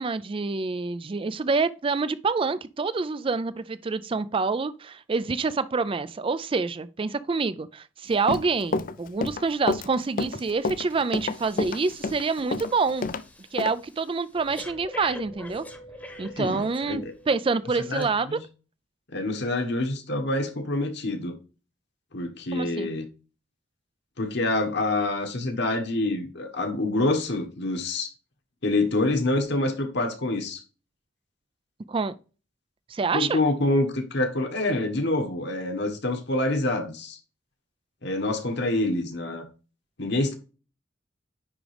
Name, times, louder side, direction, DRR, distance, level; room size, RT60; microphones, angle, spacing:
voice 1, 0.0-13.1 13.5-15.6 16.2-18.4 22.5-22.9 31.9-32.2 32.9-33.4, right 4 dB, 30° right, 0.4 m, -27 dB
Run, 8.1-13.2 13.6-13.7, left 3 dB, 45° left, 0.5 m, -29 dB
Breathing, 10.4-10.6 10.9-17.3 17.9-18.0, left 1 dB, 10° left, 1.0 m, -45 dB
voice 2, 16.4-17.1 17.9-18.4 19.1-21.3 22.1-23.0 24.2-28.1 28.6-30.6 33.1-37.2 38.0-39.5 40.0-40.3, left 2 dB, 60° left, 1.4 m, -26 dB
9.9 x 3.7 x 3.4 m
head